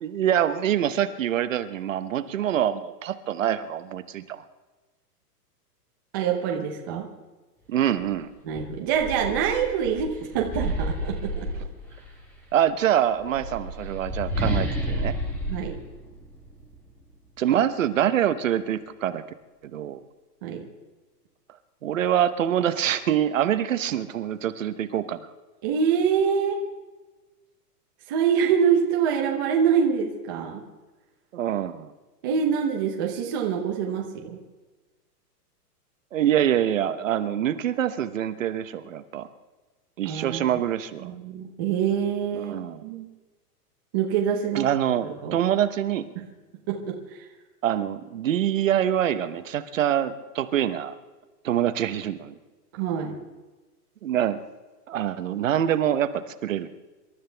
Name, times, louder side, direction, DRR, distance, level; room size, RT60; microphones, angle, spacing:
voice 1, 0.0-4.4 7.7-8.3 12.5-15.1 17.4-19.2 19.6-20.0 21.8-25.3 31.3-31.9 36.1-39.3 40.0-41.1 42.3-42.8 44.5-46.1 47.6-51.0 51.4-52.4 54.0-54.4 54.9-56.7, right 10 dB, 55° right, 11 dB, 1.0 m, -25 dB
voice 2, 6.1-7.1 8.4-11.5 15.5-15.8 20.4-20.7 25.6-26.6 28.1-30.6 32.2-34.4 40.0-40.4 41.0-42.6 42.8-43.1 43.9-44.7 45.1-45.4 46.2-46.3 46.7-47.3 52.7-53.2, right 7 dB, 15° right, 0 dB, 0.7 m, -25 dB
sound 1, 8.0-8.1 8.5-12.2 13.1-16.7, equal, 5° left, 1.0 m, -31 dB
26.5 x 12.5 x 3.4 m, 1.2 s
hypercardioid pair, 175°, 48 cm